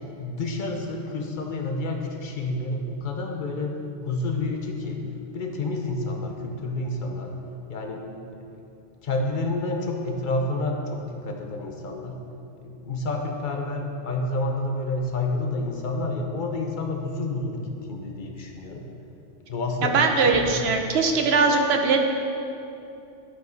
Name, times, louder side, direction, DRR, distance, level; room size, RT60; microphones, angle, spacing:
voice 1, 0.2-3.7 4.1-5.0 5.3-7.3 7.7-8.0 9.0-12.2 12.6-18.8 19.5-20.5, left 2 dB, 45° left, 2 dB, 0.9 m, -29 dB
voice 2, 19.8-22.0, right 4 dB, 65° right, 4 dB, 1.0 m, -21 dB
11.5 x 5.2 x 3.9 m, 2.7 s
omnidirectional pair, 1.2 m